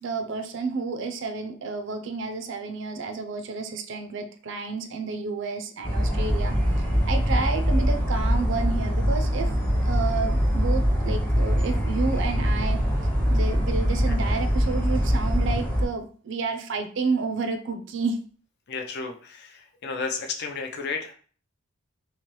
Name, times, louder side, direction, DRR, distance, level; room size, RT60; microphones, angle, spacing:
voice 1, 0.0-9.5 9.8-12.8 13.3-18.2, right 4 dB, 60° right, 6 dB, 0.5 m, -30 dB
sound 1, 5.8-15.8, equal, 10° left, 0.7 m, -23 dB
voice 2, 14.1-14.4 18.7-21.1, left 4 dB, 50° left, 4 dB, 0.5 m, -33 dB
3.2 x 2.9 x 3.0 m, 0.43 s
head